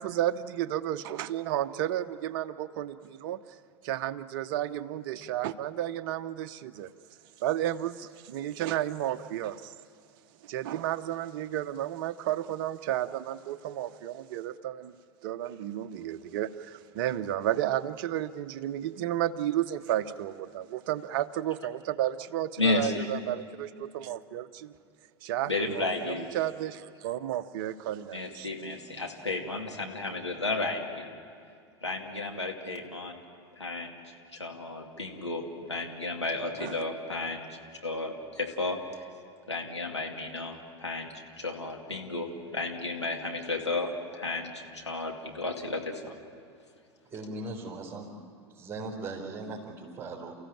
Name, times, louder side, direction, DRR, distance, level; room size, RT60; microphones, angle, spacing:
voice 1, 0.0-3.4 3.8-6.9 7.4-9.7 10.4-14.9 15.2-24.7 25.2-28.5 36.6-36.7, right 12 dB, 50° right, 12 dB, 0.8 m, -32 dB
voice 2, 22.6-23.0 25.4-26.2 28.1-31.0 31.8-33.2 33.6-34.0 34.3-38.8 39.5-46.1, left 3 dB, 85° left, 0 dB, 2.5 m, -33 dB
voice 3, 47.0-48.1 48.5-50.4, right 2 dB, 15° right, -4 dB, 4.4 m, -39 dB
30.0 x 15.5 x 8.9 m, 2.4 s
figure-of-eight pair, 85°, 14 cm